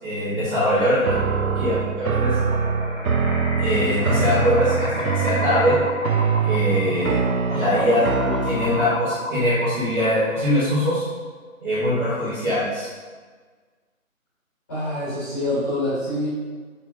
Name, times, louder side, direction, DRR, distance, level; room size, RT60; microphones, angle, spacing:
voice 1, 0.0-2.3 3.6-5.8 6.4-7.1 7.5-11.1 11.6-12.9, equal, 10° right, -19 dB, 1.3 m, -22 dB
sound 1, 1.0-9.1, right 5 dB, 85° right, 0.7 m, -24 dB
sound 2, 2.2-10.6, left 2 dB, 55° left, 1.7 m, -32 dB
voice 2, 14.7-16.3, left 1 dB, 15° left, -14 dB, 1.8 m, -25 dB
7.2 x 3.8 x 4.0 m, 1.5 s
figure-of-eight pair, 165°, 41 cm